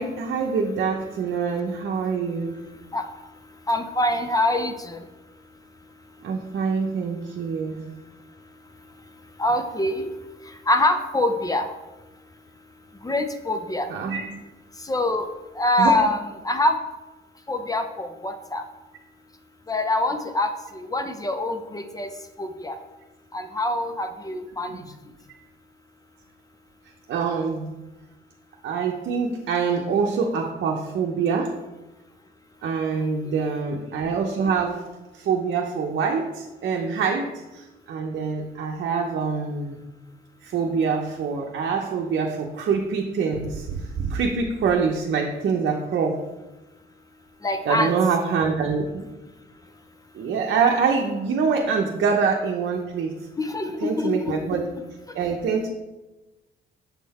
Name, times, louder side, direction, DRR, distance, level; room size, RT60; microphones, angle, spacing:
voice 1, 0.0-2.6 6.2-7.8 13.9-14.3 15.8-16.0 24.7-24.9 27.1-27.6 28.6-31.5 32.6-34.8 35.1-39.8 40.4-46.2 47.6-49.0 50.1-53.2 53.8-54.7 55.1-55.7, right 5 dB, 65° right, 0 dB, 0.7 m, -25 dB
voice 2, 3.7-5.0 9.4-10.1 10.7-11.7 13.0-13.9 14.8-15.3 15.5-16.2 16.4-16.8 17.5-18.6 19.7-22.1 22.4-22.8 23.3-24.8 47.4-47.9 53.4-54.1, left 1 dB, 20° left, 7 dB, 0.6 m, -24 dB
7.2 x 3.8 x 4.2 m, 1.1 s
cardioid pair, 90°, 20 cm